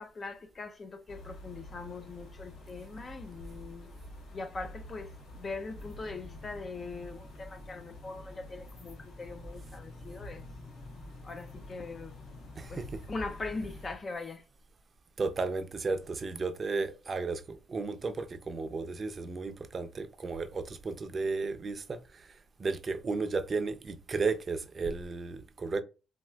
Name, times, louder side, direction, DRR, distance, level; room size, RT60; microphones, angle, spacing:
voice 1, 0.0-3.9 4.3-10.4 11.2-12.2 12.7-14.4, left 3 dB, 35° left, 0.4 m, -41 dB
sound 1, 1.1-14.0, left 1 dB, 70° left, 1.4 m, -47 dB
voice 2, 12.6-13.0 15.2-22.3 22.6-25.8, right 4 dB, 40° right, 0.5 m, -34 dB
4.1 x 2.3 x 2.3 m
cardioid pair, 90°, 0 cm